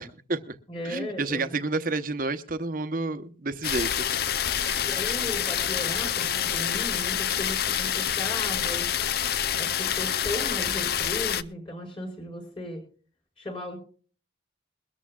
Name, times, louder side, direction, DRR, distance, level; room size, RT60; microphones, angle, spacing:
voice 1, 0.0-0.6 0.8-4.1 4.5-5.0, right 3 dB, 45° right, 0.9 m, -30 dB
voice 2, 0.7-1.5 4.9-8.9 9.6-12.8 13.4-13.8, left 1 dB, 30° left, 5.4 m, -36 dB
sound 1, 3.6-11.4, left 9 dB, 50° left, 0.5 m, -27 dB
22.0 x 14.0 x 2.3 m
head